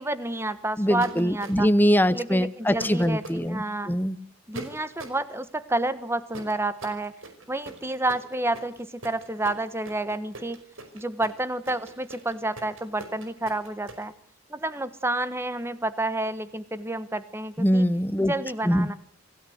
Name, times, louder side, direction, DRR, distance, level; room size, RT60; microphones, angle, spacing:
voice 1, 0.0-1.7 2.1-4.0 4.5-7.1 7.5-10.6 10.9-14.1 14.5-17.8 18.2-19.0, right 2 dB, 10° right, 13 dB, 1.3 m, -30 dB
voice 2, 0.8-4.2 17.6-18.3 18.6-18.9, equal, 10° left, 15 dB, 0.9 m, -23 dB
sound 1, 1.0-1.8 2.8-3.4 4.5-5.2 6.3-14.0, right 2 dB, 70° right, 5.2 m, -42 dB
27.5 x 16.5 x 8.0 m, 0.63 s
head